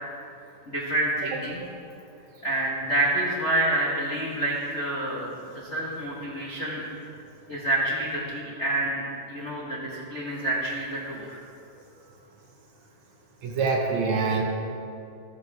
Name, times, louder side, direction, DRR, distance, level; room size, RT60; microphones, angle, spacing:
voice 1, 0.7-1.7 2.4-6.8 7.5-11.3, right 1 dB, 70° left, -5 dB, 0.6 m, -28 dB
voice 2, 13.4-14.4, right 4 dB, 65° right, 0 dB, 2.2 m, -25 dB
14.0 x 12.5 x 3.6 m, 2.6 s
omnidirectional pair, 3.9 m